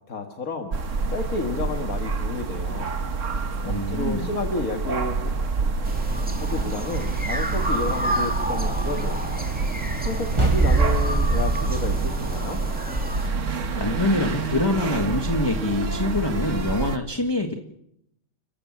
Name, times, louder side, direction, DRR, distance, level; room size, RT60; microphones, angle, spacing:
voice 1, 0.1-0.8 1.1-3.0 3.6-5.3 6.4-9.3 10.1-12.6, left 3 dB, 75° left, 4 dB, 2.2 m, -31 dB
sound 1, 0.7-17.0, right 4 dB, 60° right, 1.6 m, -28 dB
voice 2, 3.6-4.3 13.8-17.5, left 2 dB, 20° left, 5 dB, 1.5 m, -25 dB
sound 2, 5.8-13.3, equal, 5° right, 2.6 m, -31 dB
sound 3, 5.9-12.4, right 2 dB, 20° right, 1.3 m, -27 dB
30.0 x 15.0 x 7.4 m, 0.78 s
omnidirectional pair, 1.5 m